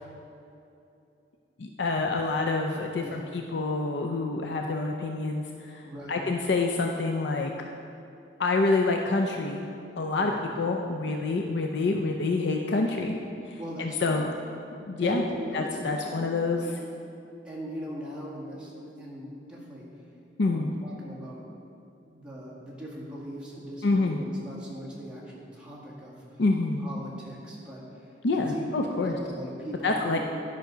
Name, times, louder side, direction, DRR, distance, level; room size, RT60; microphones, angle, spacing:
voice 1, 1.6-7.5 8.4-9.6 10.0-13.2 13.5-14.3 14.9-15.2 15.5-16.6 20.4-20.7 23.8-24.2 26.4-26.9 28.2-29.2 29.8-30.2, left 3 dB, 75° left, 2 dB, 0.5 m, -27 dB
voice 2, 3.0-3.3 5.8-6.2 10.2-10.4 13.6-14.2 15.0-16.3 16.6-16.7 17.4-19.9 20.4-21.4 22.1-26.2 26.8-27.8 28.3-28.6 28.9-30.2, equal, 5° right, -6 dB, 1.7 m, -39 dB
10.5 x 5.7 x 5.0 m, 2.7 s
head